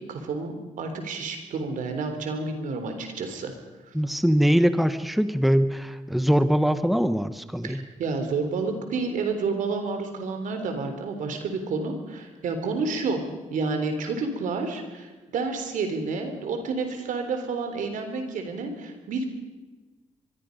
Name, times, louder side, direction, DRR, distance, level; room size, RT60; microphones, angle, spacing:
voice 1, 0.0-3.5 3.9-4.0 7.6-13.2 13.5-19.3, right 4 dB, 90° right, 6 dB, 3.5 m, -30 dB
voice 2, 3.9-7.8, equal, ahead, 11 dB, 1.2 m, -22 dB
24.5 x 22.5 x 5.3 m, 1.2 s
cardioid pair, 80°, 13 cm